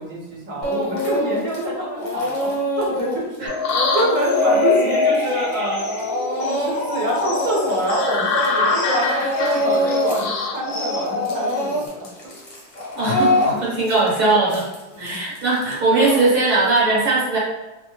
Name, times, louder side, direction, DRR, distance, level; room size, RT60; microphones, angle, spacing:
voice 1, 0.0-5.9 6.3-12.1 14.9-15.2, right 1 dB, 55° right, -5 dB, 1.4 m, -26 dB
Speech / Crying sobbing, 0.6-1.6 1.9-8.6 8.8-10.3 10.5-16.8, equal, 40° left, 0.7 m, -25 dB
sound 1, 3.5-11.9, left 4 dB, 65° left, 0.9 m, -23 dB
voice 2, 12.9-14.7 15.0-17.4, right 3 dB, 75° right, -7 dB, 1.4 m, -19 dB
3.0 x 2.1 x 3.0 m, 1.1 s
omnidirectional pair, 1.7 m